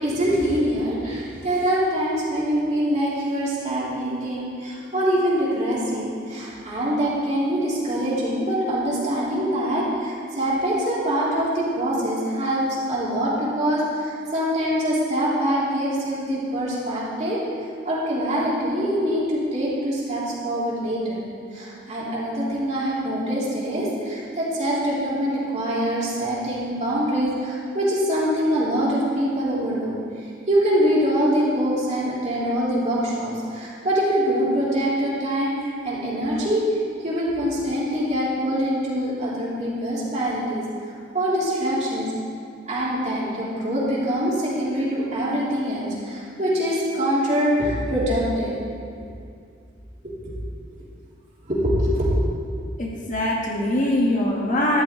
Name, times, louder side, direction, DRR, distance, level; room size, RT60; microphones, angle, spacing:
voice 1, 0.0-17.4 17.8-21.2 21.5-42.1 42.7-48.5 50.0-50.1 50.7-50.8 51.4-52.1, equal, 40° right, -7 dB, 3.4 m, -24 dB
voice 2, 52.8-54.8, left 1 dB, 45° left, -2 dB, 1.8 m, -22 dB
13.0 x 10.5 x 4.6 m, 2.3 s
head